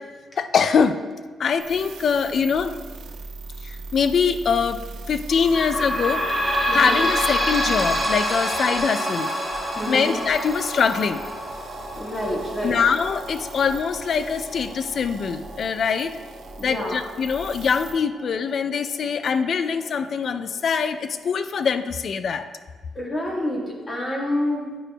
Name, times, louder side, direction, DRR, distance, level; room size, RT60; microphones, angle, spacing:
voice 1, 0.4-1.0 1.4-2.7 3.6-4.8 5.1-6.2 6.7-9.3 9.9-11.2 12.6-16.2 16.6-22.5, left 6 dB, 60° left, 10 dB, 0.3 m, -23 dB
sound 1, 1.6-17.9, right 3 dB, 80° right, 0.6 m, -40 dB
sound 2, 5.3-18.5 19.0-19.1 19.4-19.5 20.3-20.4, equal, 5° right, 1.8 m, -28 dB
voice 2, 9.7-10.1 12.0-12.8 16.6-17.0 22.9-24.8, left 1 dB, 30° left, -2 dB, 1.5 m, -28 dB
10.0 x 4.9 x 2.2 m, 1.4 s
cardioid pair, 85°, 0 cm